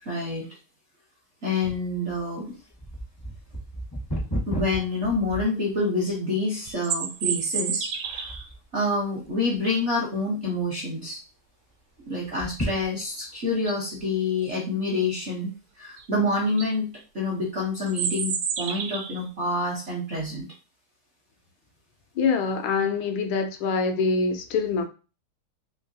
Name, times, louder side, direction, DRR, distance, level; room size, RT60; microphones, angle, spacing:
voice 1, 0.0-0.5 1.4-2.5 4.5-8.3 8.7-11.2 12.1-15.5 15.8-20.5, left 2 dB, 60° right, 0.7 m, -27 dB
sound 1, 1.6-6.1 6.7-6.8 7.4-7.7 8.0-8.7 9.2-9.9 10.3-10.4 10.6-10.7 12.2-13.4 14.0-14.1, right 1 dB, 25° left, 0.4 m, -34 dB
sound 2, 6.6-8.5 13.0-13.1 13.5-13.9 16.0-16.1 16.4-16.7 17.9-19.2, right 7 dB, 75° right, 1.3 m, -30 dB
voice 2, 22.2-24.8, left 4 dB, 80° left, 1.4 m, -24 dB
3.7 x 2.8 x 2.6 m
omnidirectional pair, 2.3 m